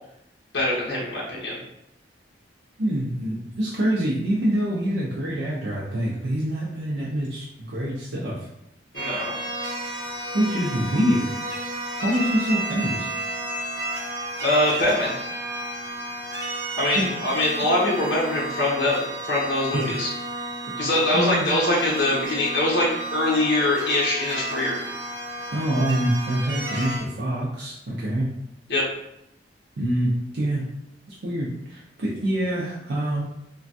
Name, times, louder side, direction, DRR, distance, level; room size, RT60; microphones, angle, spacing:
voice 1, 0.5-1.6 8.9-9.3 14.4-15.1 16.8-20.1 20.8-24.8 28.7-28.8, left 1 dB, 65° left, -6 dB, 0.8 m, -23 dB
voice 2, 2.8-8.5 10.3-11.3 12.0-13.1 16.9-17.1 18.3-18.4 19.7-20.0 21.1-21.5 25.5-28.3 29.8-30.6 31.1-33.2, right 1 dB, 65° right, -5 dB, 0.5 m, -25 dB
sound 1, 8.9-27.0, right 1 dB, 90° right, 0.8 m, -32 dB
3.2 x 2.2 x 2.5 m, 0.81 s
head